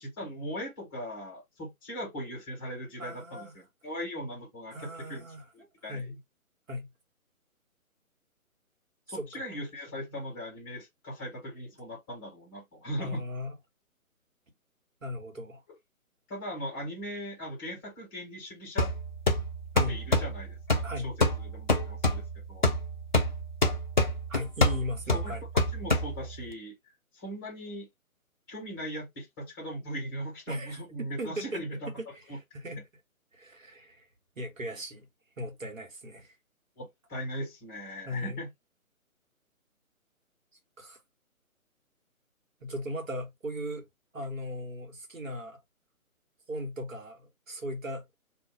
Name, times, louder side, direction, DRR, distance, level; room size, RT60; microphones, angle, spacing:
voice 1, 0.0-5.3 5.5-6.1 9.1-13.2 16.3-18.9 19.9-22.2 22.5-22.7 25.1-26.7 27.1-27.9 28.5-31.9 32.3-32.4 36.8-38.5 44.2-44.3, equal, 15° left, 1.3 m, -39 dB
voice 2, 3.0-3.5 4.7-6.1 6.7-6.9 9.1-9.4 13.0-13.5 15.0-15.6 19.7-20.0 20.8-21.1 24.3-25.4 30.5-31.6 32.0-32.8 33.3-34.1 34.4-35.1 35.4-36.3 38.0-38.4 40.8-41.0 42.6-43.9 44.1-45.6 46.5-48.0, left 1 dB, 65° right, 1.4 m, -38 dB
sound 1, 18.8-26.5, left 1 dB, 35° left, 0.5 m, -28 dB
2.6 x 2.6 x 3.9 m
figure-of-eight pair, 140°, 43 cm